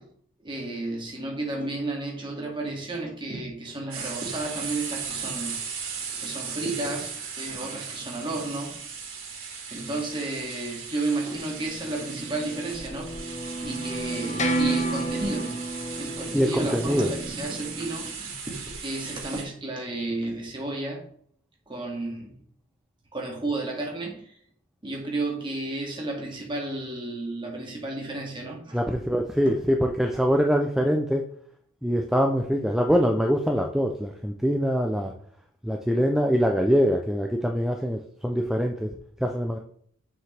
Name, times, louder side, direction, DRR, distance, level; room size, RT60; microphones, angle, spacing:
voice 1, 0.4-5.6 6.1-8.7 9.7-13.1 13.5-15.6 16.0-21.0 21.7-22.4 23.1-24.4 24.8-28.8 29.5-29.6, right 2 dB, 25° right, -1 dB, 2.2 m, -32 dB
sound 1, 3.9-19.4, right 6 dB, 75° right, 2.7 m, -37 dB
sound 2, 12.1-18.1, right 2 dB, 35° left, 1.1 m, -31 dB
voice 2, 16.3-17.1 28.7-31.2 31.8-35.1 35.6-38.9 39.2-39.6, equal, ahead, 2 dB, 0.5 m, -24 dB
7.2 x 6.4 x 3.3 m, 0.62 s
head